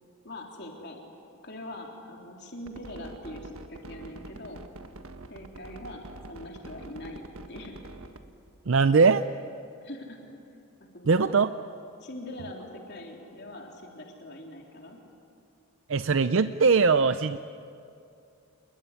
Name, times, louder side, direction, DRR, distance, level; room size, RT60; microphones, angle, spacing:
voice 1, 0.2-1.0 1.4-4.6 5.3-7.8 9.8-10.2 10.8-11.3 12.0-15.0 16.4-16.6, left 1 dB, 50° left, 1 dB, 3.7 m, -42 dB
sound 1, 2.7-8.2, right 2 dB, 80° right, 1.5 m, -45 dB
voice 2, 8.7-9.2 11.1-11.5 15.9-17.4, right 4 dB, 65° right, 11 dB, 0.5 m, -21 dB
28.0 x 21.5 x 9.9 m, 2.6 s
head